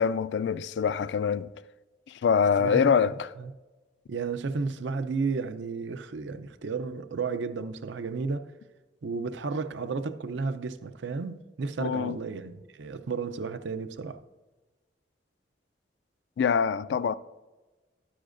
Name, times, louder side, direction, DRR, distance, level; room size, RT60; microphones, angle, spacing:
voice 1, 0.0-1.5 2.1-3.3 11.8-12.2 16.4-17.2, left 6 dB, 75° left, 0.3 m, -25 dB
voice 2, 2.6-2.9 3.4-3.5 4.1-8.5 9.0-14.2, right 4 dB, 85° right, 0.5 m, -33 dB
12.0 x 10.0 x 2.5 m
head